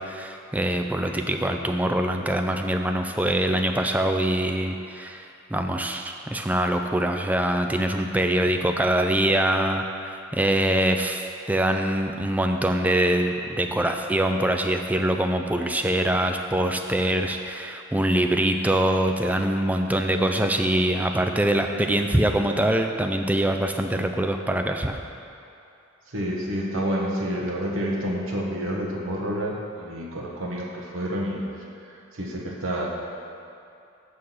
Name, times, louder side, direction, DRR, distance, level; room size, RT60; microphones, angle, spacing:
voice 1, 0.0-5.3 5.5-25.0, right 1 dB, 10° right, 4 dB, 0.4 m, -24 dB
voice 2, 26.1-31.4 31.9-32.9, equal, 85° right, -2 dB, 1.2 m, -29 dB
6.6 x 6.4 x 5.6 m, 2.7 s
head